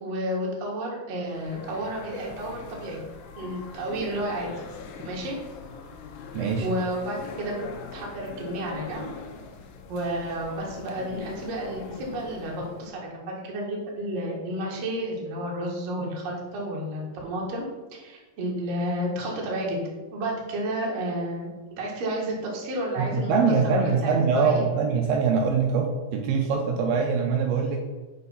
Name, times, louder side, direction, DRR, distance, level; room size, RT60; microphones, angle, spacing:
voice 1, 0.0-3.0 3.4-4.5 5.0-5.4 6.6-7.6 7.9-9.1 9.9-17.6 17.9-19.8 20.1-21.5 21.8-23.3 23.6-24.6, right 1 dB, 50° right, -2 dB, 2.3 m, -31 dB
sound 1, 1.3-12.9, left 5 dB, 75° left, 2.5 m, -42 dB
voice 2, 6.3-6.7 23.0-27.8, right 5 dB, 80° right, 2 dB, 2.6 m, -23 dB
6.7 x 5.6 x 5.6 m, 1.2 s
omnidirectional pair, 4.6 m